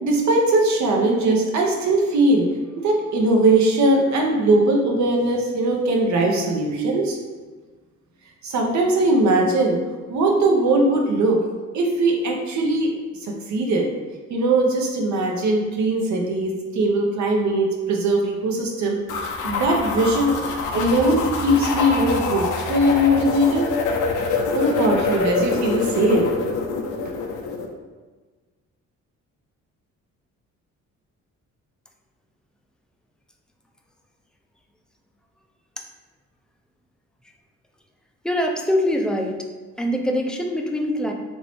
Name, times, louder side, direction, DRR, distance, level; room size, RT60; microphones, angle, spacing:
voice 1, 0.0-2.5 2.8-7.2 8.4-9.8 10.1-11.4 11.7-12.9 13.2-13.9 14.3-20.3 20.7-23.7 24.5-26.3, right 1 dB, 70° right, 1 dB, 0.7 m, -20 dB
sound 1, 19.1-27.7, left 4 dB, 85° left, 0.5 m, -25 dB
voice 2, 38.2-39.5 39.8-41.1, left 1 dB, 5° left, 1 dB, 0.3 m, -23 dB
3.0 x 2.7 x 3.0 m, 1.3 s
cardioid pair, 90°, 30 cm